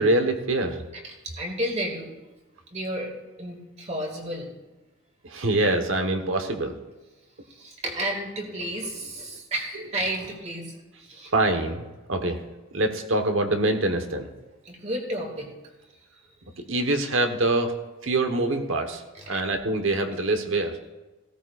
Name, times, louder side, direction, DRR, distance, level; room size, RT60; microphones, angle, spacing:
voice 1, 0.0-0.8 5.2-6.7 11.3-12.4 12.7-14.3 16.7-17.7 18.0-19.0 19.3-20.8, right 2 dB, 70° right, 5 dB, 1.1 m, -24 dB
voice 2, 0.9-2.1 2.7-3.1 3.4-4.5 7.5-11.3 14.6-15.5 19.1-19.4, right 1 dB, 35° right, 1 dB, 2.0 m, -32 dB
16.5 x 13.5 x 2.4 m, 1.1 s
head